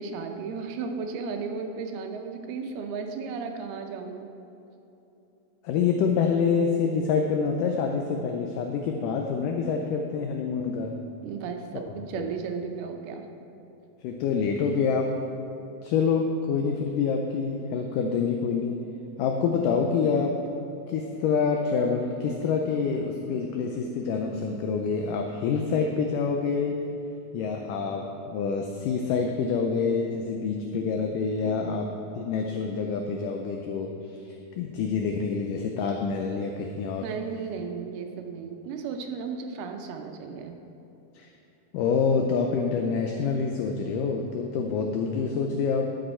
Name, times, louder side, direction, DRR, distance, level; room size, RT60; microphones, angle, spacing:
voice 1, 0.0-4.3 11.2-13.3 31.4-31.6 37.0-40.6, right 5 dB, 85° right, 5 dB, 2.7 m, -34 dB
voice 2, 5.6-11.0 11.7-11.9 12.1-12.3 14.0-15.1 15.8-18.8 19.2-20.4 20.9-26.8 27.3-31.9 32.2-33.9 34.2-37.1 41.1-41.3 41.7-46.0, left 5 dB, 80° left, 3 dB, 1.9 m, -27 dB
12.5 x 7.9 x 4.4 m, 3.0 s
omnidirectional pair, 4.4 m